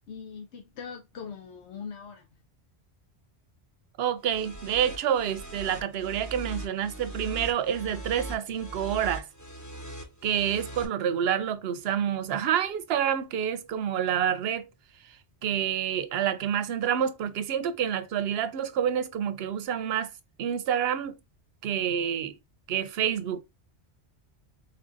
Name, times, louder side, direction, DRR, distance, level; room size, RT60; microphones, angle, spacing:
voice 1, 0.1-2.3, left 6 dB, 90° left, 0.9 m, -41 dB
voice 2, 4.0-9.3 10.2-14.7 15.4-20.1 20.4-21.2 21.6-22.3 22.7-23.4, right 9 dB, 70° right, 0.8 m, -28 dB
sound 1, 4.2-10.8, right 2 dB, 15° left, 1.0 m, -40 dB
4.1 x 2.6 x 3.7 m
omnidirectional pair, 1.1 m